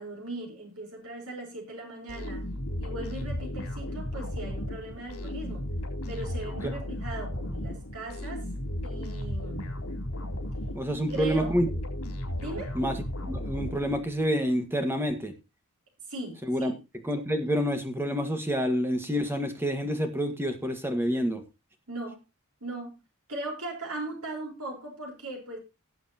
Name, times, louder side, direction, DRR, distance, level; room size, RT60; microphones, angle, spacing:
voice 1, 0.0-2.5 2.8-5.7 6.1-8.4 8.8-9.7 10.9-11.5 12.4-12.8 16.1-16.7 21.9-22.2 22.6-23.0 23.3-25.6, right 2 dB, 75° right, 1 dB, 4.6 m, -38 dB
sound 1, 2.1-14.3, left 1 dB, 75° left, 3.8 m, -35 dB
voice 2, 10.7-11.7 12.7-13.0 13.3-15.3 16.5-16.7 17.0-21.4, equal, 10° right, 6 dB, 1.7 m, -28 dB
18.0 x 7.7 x 3.0 m, 0.25 s
head